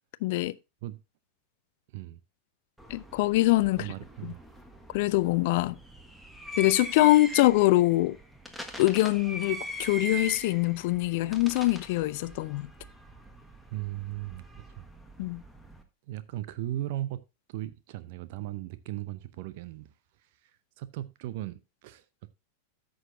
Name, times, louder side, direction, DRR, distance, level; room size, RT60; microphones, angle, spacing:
voice 1, 0.2-0.5 2.9-3.9 4.2-4.3 4.9-5.8 6.6-8.2 8.8-12.7 15.2-15.4, left 18 dB, 50° left, 0.5 m, -24 dB
sound 1, 2.8-15.8, equal, ahead, 1.4 m, -42 dB
voice 2, 3.8-4.4 13.7-14.4 14.8-14.9 16.1-17.2 17.5-19.9 20.2-22.0, right 14 dB, 50° right, 0.7 m, -37 dB
13.5 x 6.4 x 2.7 m
figure-of-eight pair, 90°, 0 cm